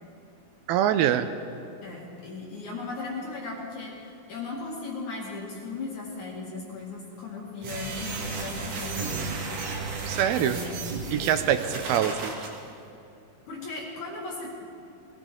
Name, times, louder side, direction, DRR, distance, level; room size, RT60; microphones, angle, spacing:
voice 1, 0.7-1.3 10.1-10.6 11.1-12.3, right 10 dB, 80° right, 10 dB, 2.3 m, -24 dB
voice 2, 1.8-9.4 10.3-10.8 13.5-14.6, left 3 dB, 55° left, -3 dB, 3.0 m, -37 dB
sound 1, 7.6-12.5, right 4 dB, 60° right, 3.1 m, -34 dB
21.5 x 16.0 x 3.7 m, 2.7 s
omnidirectional pair, 4.5 m